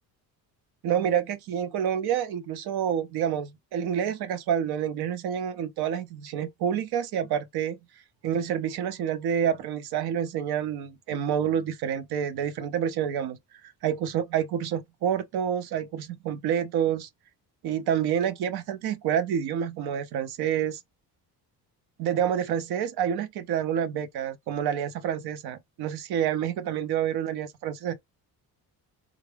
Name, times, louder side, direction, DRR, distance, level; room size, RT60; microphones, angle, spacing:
voice 1, 0.8-7.8 8.2-13.4 13.8-17.1 17.6-20.8 22.0-27.9, right 9 dB, 80° right, 0.7 m, -28 dB
3.6 x 2.1 x 3.3 m
cardioid pair, 125°, 37 cm